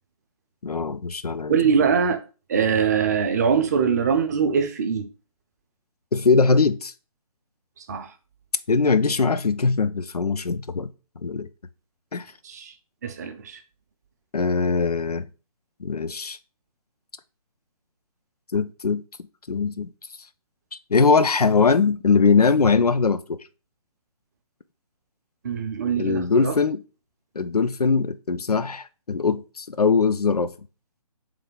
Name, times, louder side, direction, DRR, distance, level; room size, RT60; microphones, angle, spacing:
voice 1, 0.6-1.9 6.1-6.9 8.7-10.9 11.2-11.5 12.1-12.3 14.3-15.3 15.8-16.4 18.5-19.0 19.5-19.9 20.9-23.4 26.0-26.8 27.4-30.5, left 4 dB, 90° left, 0.5 m, -21 dB
voice 2, 1.5-2.2 2.5-5.1 7.9-8.1 12.4-12.7 13.0-13.6 25.4-26.6, right 6 dB, 30° right, 0.5 m, -22 dB
3.3 x 3.3 x 3.7 m
figure-of-eight pair, 140°, 19 cm